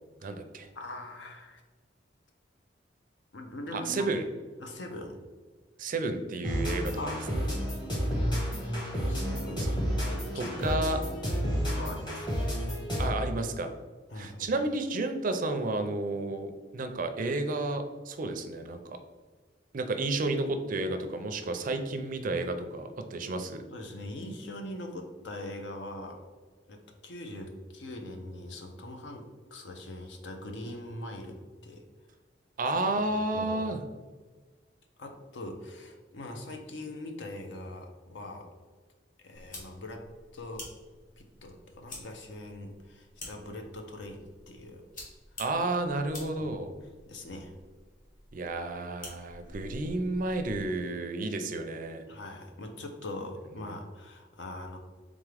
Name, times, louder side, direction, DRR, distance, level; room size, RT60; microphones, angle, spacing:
voice 1, 0.2-0.7 3.7-4.2 5.8-7.2 9.6-9.7 10.3-11.0 13.0-13.7 14.1-19.0 19.7-23.6 32.6-33.8 45.4-46.7 48.3-52.0 53.6-53.7, right 2 dB, 45° right, 7 dB, 0.4 m, -31 dB
voice 2, 0.7-1.6 3.3-4.1 4.6-5.2 7.0-7.2 9.1-9.7 10.0-10.8 11.7-12.8 14.1-14.5 23.7-26.2 26.7-31.8 33.1-33.6 35.0-38.5 39.2-40.1 40.3-40.7 41.2-44.8 46.4-46.6 47.1-47.5 52.1-54.8, left 1 dB, 70° left, 4 dB, 0.6 m, -42 dB
sound 1, 6.4-13.3, equal, 25° left, 1.2 m, -31 dB
sound 2, 39.3-50.8, left 1 dB, 45° left, 1.2 m, -49 dB
3.6 x 3.5 x 3.3 m, 1.4 s
head